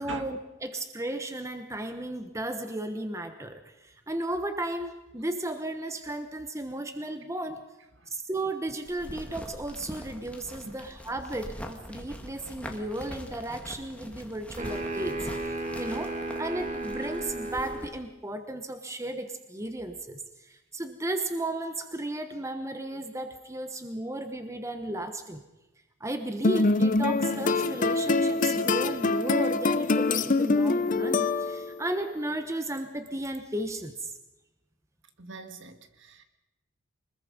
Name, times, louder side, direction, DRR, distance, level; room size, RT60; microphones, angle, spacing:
voice 1, 0.0-7.6 8.1-25.4 26.0-34.1, right 1 dB, 15° right, 7 dB, 1.1 m, -34 dB
sound 1, 8.9-17.9, equal, 5° left, 1.7 m, -43 dB
sound 2, 14.6-17.9, right 2 dB, 35° right, 2.3 m, -34 dB
sound 3, 26.4-31.8, left 3 dB, 40° left, 0.7 m, -25 dB
voice 2, 35.2-36.2, right 3 dB, 60° right, 7 dB, 1.8 m, -42 dB
24.5 x 20.5 x 5.3 m, 0.97 s
head